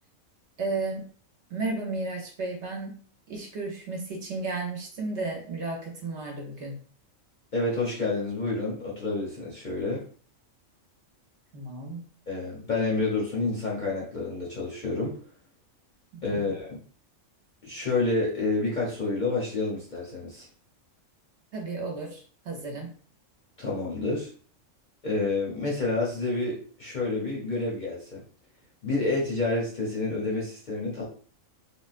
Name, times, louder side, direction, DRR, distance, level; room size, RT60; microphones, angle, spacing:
voice 1, 0.6-1.1 1.5-3.0 3.3-6.8 11.5-12.0 16.1-16.5 21.5-22.9, right 3 dB, 60° right, 0 dB, 1.0 m, -33 dB
voice 2, 7.5-10.0 12.3-15.2 16.2-16.8 17.6-20.5 23.6-24.3 25.0-28.2 28.8-31.0, left 3 dB, 45° left, -4 dB, 0.7 m, -29 dB
3.6 x 2.1 x 2.4 m, 0.43 s
omnidirectional pair, 1.4 m